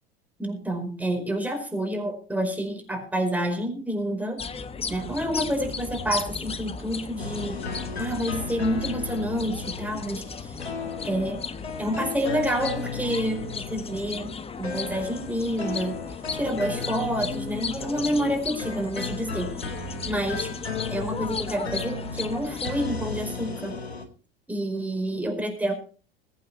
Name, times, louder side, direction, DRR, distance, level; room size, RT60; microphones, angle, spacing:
voice 1, 0.4-4.4 4.9-7.6 8.0-10.5 11.0-11.4 11.8-14.3 14.6-16.0 16.3-19.5 20.0-20.5 20.9-23.8 24.5-25.7, equal, 5° right, 4 dB, 4.9 m, -28 dB
sound 1, 4.4-22.9, left 5 dB, 20° left, 1.1 m, -35 dB
sound 2, 7.2-18.3 18.6-24.0, left 4 dB, 85° left, 2.1 m, -36 dB
21.5 x 8.7 x 4.2 m, 0.38 s
figure-of-eight pair, 75°, 31 cm